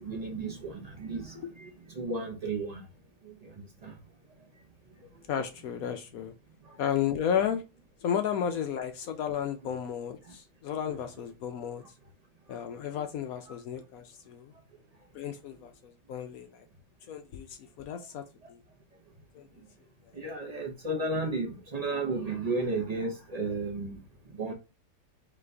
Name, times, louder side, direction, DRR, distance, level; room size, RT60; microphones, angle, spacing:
voice 1, 0.0-1.3 2.0-2.8 20.2-24.0 24.4-24.5, right 3 dB, 45° right, 0.5 m, -33 dB
voice 2, 5.3-6.3 6.8-7.6 8.0-11.8 12.5-14.5 15.1-16.6 17.1-18.2 18.5-18.6 19.3-19.5, left 8 dB, 70° left, 0.9 m, -33 dB
3.9 x 3.3 x 3.3 m
omnidirectional pair, 1.8 m